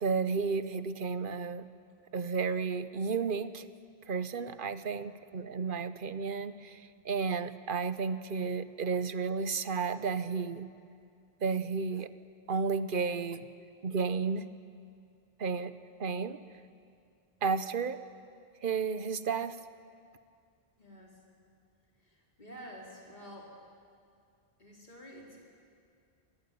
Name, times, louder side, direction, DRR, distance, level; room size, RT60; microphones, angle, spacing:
voice 1, 0.0-1.7 2.1-3.7 4.1-10.7 11.4-12.1 12.5-13.5 13.8-14.5 15.4-15.7 16.0-16.4 17.4-18.0 18.6-19.6, right 5 dB, 55° right, 12 dB, 1.1 m, -32 dB
voice 2, 20.8-21.2 22.0-23.6 24.6-25.4, equal, 45° left, -3 dB, 4.8 m, -49 dB
25.5 x 19.0 x 9.4 m, 2.3 s
omnidirectional pair, 1.0 m